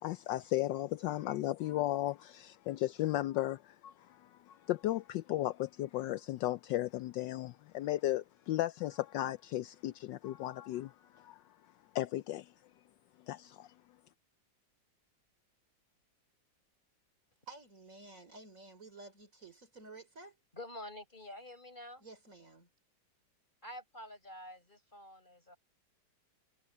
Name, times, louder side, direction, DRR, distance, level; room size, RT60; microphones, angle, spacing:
voice 1, 0.0-11.4 11.9-12.5 13.3-13.7, left 15 dB, 75° left, 1.2 m, -35 dB
voice 2, 17.5-20.4 22.0-22.7, right 3 dB, 45° right, 3.9 m, -52 dB
voice 3, 20.5-22.1 23.6-25.6, left 1 dB, 25° left, 7.2 m, -48 dB
omnidirectional pair, 2.0 m